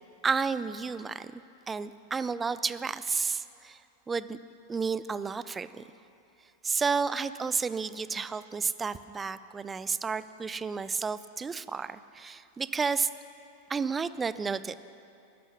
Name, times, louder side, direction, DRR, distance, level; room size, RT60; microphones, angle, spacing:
voice 1, 0.2-3.8 4.1-4.4 4.7-5.8 6.6-13.1 13.7-14.7, right 5 dB, 15° right, 15 dB, 0.4 m, -31 dB
12.5 x 11.0 x 5.8 m, 2.6 s
figure-of-eight pair, 90°, 0 cm